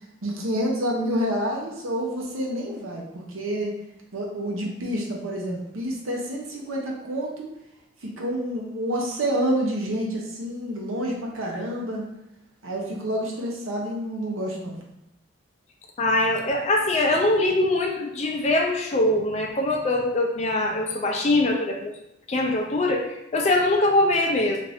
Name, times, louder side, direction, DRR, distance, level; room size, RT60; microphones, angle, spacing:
voice 1, 0.2-3.7 4.1-7.5 8.0-12.1 12.6-14.8, equal, 85° right, -1 dB, 0.7 m, -28 dB
voice 2, 16.0-21.9 22.3-24.6, left 2 dB, 35° left, 1 dB, 0.4 m, -22 dB
2.6 x 2.5 x 3.3 m, 0.85 s
head